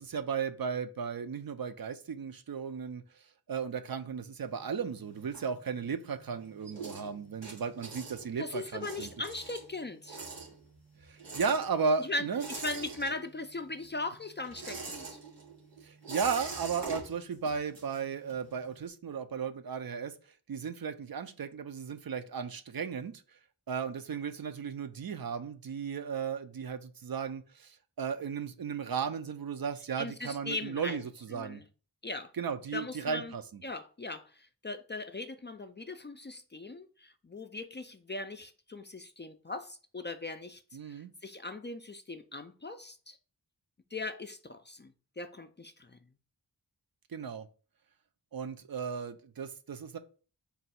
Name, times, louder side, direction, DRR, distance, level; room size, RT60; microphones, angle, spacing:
voice 1, 0.0-3.0 3.5-9.1 11.0-12.4 15.8-20.1 20.5-23.1 23.7-31.6 32.4-33.6 40.7-41.1 47.1-47.5 48.3-50.0, right 6 dB, 60° right, 0.5 m, -35 dB
sound 1, 4.4-6.0 6.3-13.6 13.8-18.5, right 3 dB, 85° right, 1.6 m, -44 dB
voice 2, 8.4-10.2 12.0-15.2 30.0-31.0 31.3-31.6 32.0-32.3 32.7-33.3 33.6-40.6 40.9-43.2 43.9-46.0, left 2 dB, 30° left, 0.3 m, -39 dB
4.0 x 2.3 x 4.1 m
wide cardioid pair, 50°, 41 cm